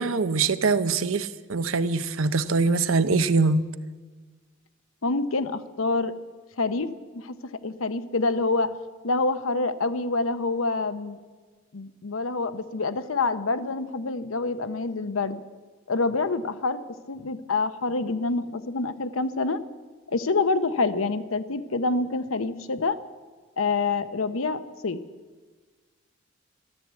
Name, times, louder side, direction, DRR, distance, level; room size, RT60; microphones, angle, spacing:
voice 1, 0.0-3.7, right 4 dB, 85° right, 13 dB, 0.7 m, -23 dB
voice 2, 5.0-6.1 6.6-8.7 9.0-11.2 11.7-15.4 15.9-19.6 20.1-23.0 23.6-25.0, left 3 dB, 90° left, 12 dB, 0.8 m, -27 dB
13.0 x 12.0 x 8.2 m, 1.4 s
head